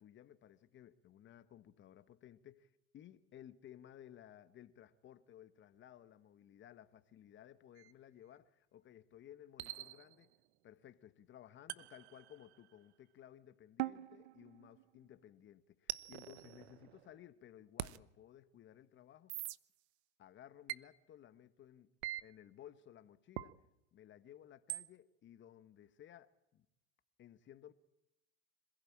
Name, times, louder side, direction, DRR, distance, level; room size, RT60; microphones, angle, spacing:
voice 1, 0.0-10.3 10.6-19.3 20.2-21.9 22.2-23.5 23.9-26.7 27.2-27.7, left 11 dB, 35° left, 1.5 m, -58 dB
sound 1, 7.8-7.9 9.6-10.4 11.7-12.8 13.8-15.1 15.9-17.2 17.8-18.0 19.3-19.6 20.7-20.9 22.0-22.2 23.4-23.5 24.7-24.9, right 16 dB, 80° right, 1.0 m, -44 dB
26.5 x 16.0 x 8.8 m
supercardioid pair, 110°, 32 cm